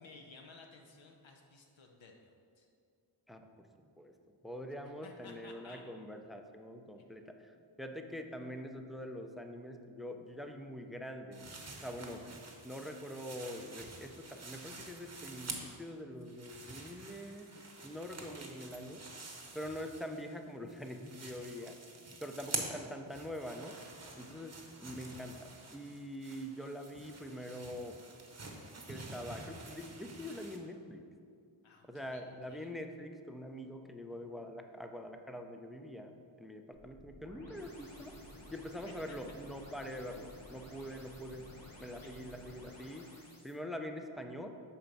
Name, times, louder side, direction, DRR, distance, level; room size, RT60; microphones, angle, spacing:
voice 1, 0.0-2.7 5.0-5.9 12.7-12.9 24.4-24.5 31.6-32.7 38.5-38.6 38.9-39.2 42.0-42.2, left 3 dB, 75° left, 2 dB, 0.8 m, -56 dB
voice 2, 3.3-4.1 4.4-11.5 11.8-12.2 12.6-19.0 19.5-21.8 22.2-23.8 24.2-28.0 28.9-31.0 31.8-36.1 36.4-38.2 38.5-43.1 43.4-44.5, equal, ahead, 5 dB, 0.4 m, -44 dB
sound 1, 11.3-15.9 16.2-20.4 20.7-30.6, right 3 dB, 35° right, 0.9 m, -47 dB
sound 2, 36.7-43.5, left 1 dB, 45° left, 1.5 m, -53 dB
5.8 x 4.4 x 5.2 m, 2.3 s
wide cardioid pair, 70°, 47 cm